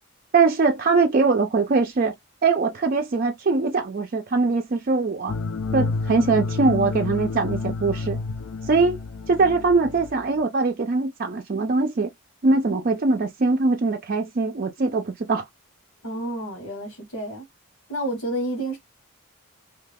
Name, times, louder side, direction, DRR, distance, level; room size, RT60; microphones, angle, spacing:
voice 1, 0.3-2.1 2.4-5.3 5.7-8.2 8.6-9.0 9.3-12.1 12.4-15.4, right 4 dB, 45° right, 0.4 m, -22 dB
sound 1, 5.3-10.4, left 3 dB, 60° left, 0.4 m, -29 dB
voice 2, 16.0-17.4 17.9-18.8, right 1 dB, 90° left, 1.5 m, -29 dB
2.8 x 2.3 x 3.3 m
head